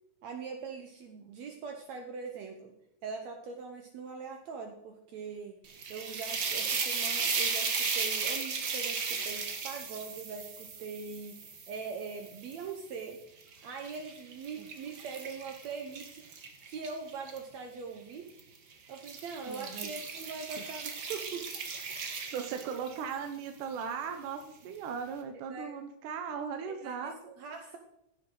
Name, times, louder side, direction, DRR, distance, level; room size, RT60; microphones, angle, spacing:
voice 1, 0.2-2.7 3.0-5.6 5.9-13.2 13.6-16.2 16.7-18.3 18.9-21.4 25.5-25.7 26.7-27.8, right 5 dB, 65° right, 4 dB, 2.1 m, -42 dB
sound 1, 5.6-12.9 13.4-17.4 18.3-18.6 18.9-23.1, right 5 dB, 50° right, 1.3 m, -36 dB
voice 2, 19.5-19.9 22.3-27.2, right 6 dB, 80° right, 6 dB, 2.3 m, -38 dB
16.0 x 7.6 x 3.8 m, 0.82 s
omnidirectional pair, 3.6 m